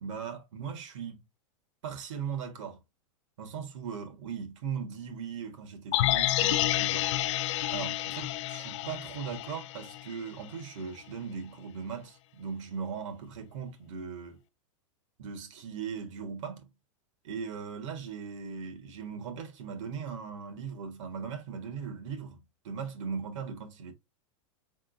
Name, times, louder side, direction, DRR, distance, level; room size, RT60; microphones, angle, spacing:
voice 1, 0.0-1.2 1.8-2.8 3.4-7.1 7.7-14.4 15.2-16.7 17.2-22.4 22.6-23.9, right 6 dB, 70° right, 1.5 m, -39 dB
sound 1, 5.9-10.1 10.4-10.5, left 14 dB, 60° left, 0.4 m, -29 dB
3.8 x 3.6 x 2.5 m
supercardioid pair, 135°, 17 cm